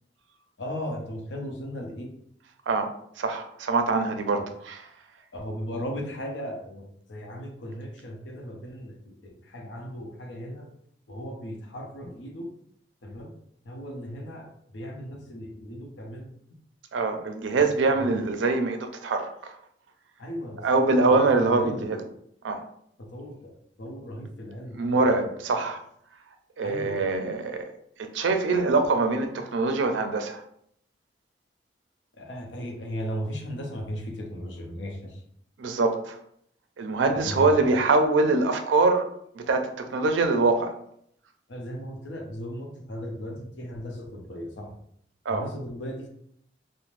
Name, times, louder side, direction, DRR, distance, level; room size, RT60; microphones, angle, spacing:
voice 1, 0.6-2.1 5.3-10.7 11.1-12.5 13.0-13.3 13.7-14.5 14.7-16.3 20.2-21.9 23.0-24.8 25.1-25.2 26.6-27.0 32.2-35.2 37.1-37.6 41.5-44.7 45.3-46.1, equal, 85° left, 0.7 m, -36 dB
voice 2, 2.7-4.9 16.9-19.6 20.6-22.0 22.4-22.6 24.7-25.8 26.6-27.7 28.0-30.4 35.6-36.2 36.8-39.1 39.3-40.8 45.3-45.5, right 3 dB, 90° right, 0.4 m, -24 dB
3.1 x 2.1 x 2.5 m
head